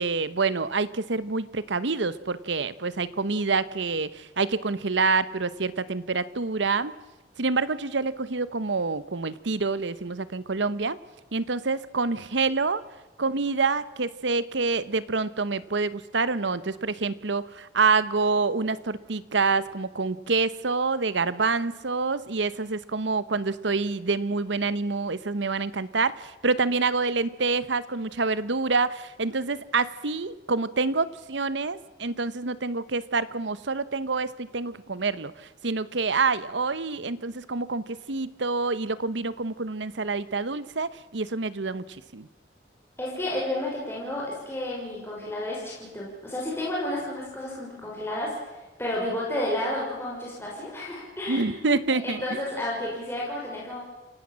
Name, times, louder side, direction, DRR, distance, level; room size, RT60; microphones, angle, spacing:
voice 1, 0.0-6.9 7.4-11.0 11.3-12.8 13.2-42.3 51.3-52.2, right 4 dB, 80° right, 16 dB, 0.9 m, -27 dB
voice 2, 43.0-48.3 48.8-51.8 52.0-53.8, left 1 dB, 15° left, -4 dB, 6.1 m, -31 dB
28.5 x 17.0 x 7.5 m, 1.1 s
head